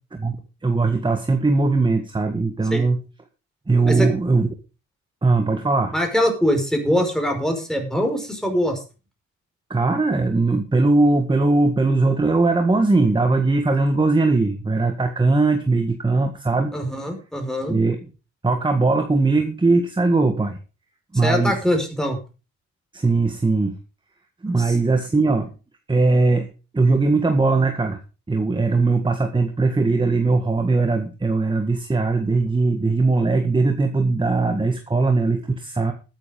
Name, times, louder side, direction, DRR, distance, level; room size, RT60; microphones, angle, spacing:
voice 1, 0.6-3.0 3.7-4.5 5.2-5.9 9.7-16.7 17.7-18.1 18.4-20.6 21.1-21.6 22.9-23.8 24.4-25.5 25.9-26.5 26.7-28.0 28.3-35.9, right 3 dB, 15° right, 6 dB, 1.8 m, -20 dB
voice 2, 5.9-8.8 16.7-17.8 21.2-22.2 24.7-24.8, equal, ahead, 4 dB, 5.3 m, -22 dB
13.0 x 9.3 x 5.3 m, 0.33 s
cardioid pair, 90°, 30 cm